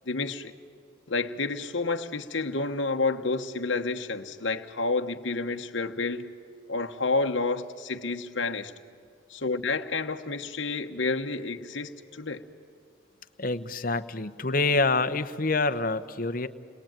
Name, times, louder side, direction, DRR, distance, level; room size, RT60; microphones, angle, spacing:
voice 1, 0.1-0.5 1.1-6.3 6.7-8.7 9.3-12.4, left 3 dB, 65° left, 1.2 m, -29 dB
voice 2, 13.4-16.5, left 3 dB, 45° left, 1.0 m, -26 dB
29.5 x 21.5 x 9.0 m
head